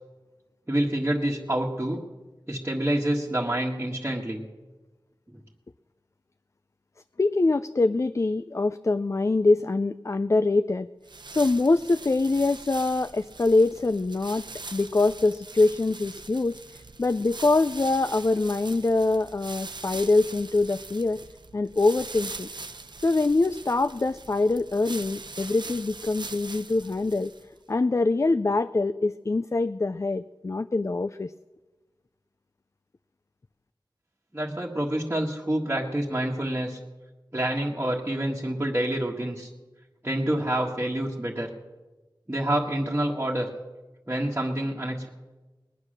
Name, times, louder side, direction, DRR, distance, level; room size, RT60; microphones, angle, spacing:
voice 1, 0.7-2.0 2.5-4.4 34.3-36.8 37.3-39.5 40.0-41.5 42.3-43.5 44.1-45.1, right 1 dB, 25° right, -4 dB, 1.6 m, -27 dB
voice 2, 7.2-10.9 11.3-14.4 14.7-21.2 21.5-22.5 23.0-27.3 27.7-31.3, left 3 dB, 35° left, 12 dB, 0.4 m, -24 dB
sound 1, 11.0-27.6, right 3 dB, 65° right, 0.8 m, -42 dB
20.0 x 9.6 x 6.5 m, 1.2 s
wide cardioid pair, 70°, 8 cm